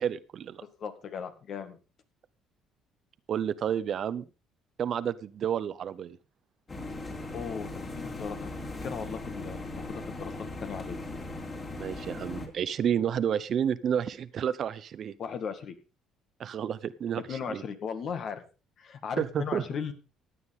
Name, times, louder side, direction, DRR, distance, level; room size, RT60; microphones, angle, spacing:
voice 1, 0.0-0.6 3.3-4.3 4.8-6.2 11.8-15.1 16.4-17.6 19.2-19.7, right 8 dB, 55° right, 16 dB, 0.8 m, -30 dB
voice 2, 0.6-1.8 7.3-8.5 8.8-10.3 10.6-11.0 15.2-15.8 17.3-18.4 18.8-19.9, left 6 dB, 55° left, 8 dB, 2.0 m, -37 dB
sound 1, 6.7-12.5, left 2 dB, 30° left, 4.0 m, -38 dB
16.0 x 9.5 x 3.7 m, 0.32 s
supercardioid pair, 85°, 0 cm